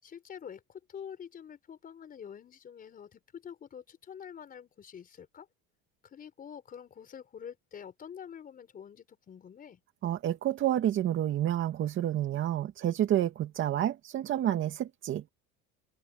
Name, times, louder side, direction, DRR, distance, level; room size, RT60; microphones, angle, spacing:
voice 1, 0.0-5.5 6.0-9.8, left 8 dB, 30° left, 4.9 m, -47 dB
voice 2, 10.0-15.3, right 11 dB, 40° right, 2.3 m, -29 dB
cardioid pair, 155°, 30 cm